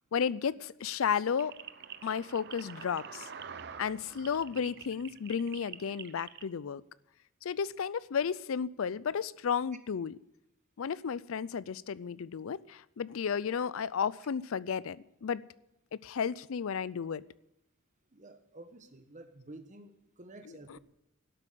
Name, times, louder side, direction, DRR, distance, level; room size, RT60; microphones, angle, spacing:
voice 1, 0.1-1.5 2.0-3.3 3.8-6.8 7.4-10.2 10.8-15.4 16.0-17.2 20.5-20.8, left 7 dB, 70° left, 20 dB, 0.4 m, -33 dB
sound 1, 1.4-6.4, right 7 dB, 50° right, 0.7 m, -47 dB
voice 2, 18.1-20.8, right 2 dB, 35° right, 8 dB, 1.3 m, -51 dB
12.0 x 8.3 x 8.4 m, 0.86 s
head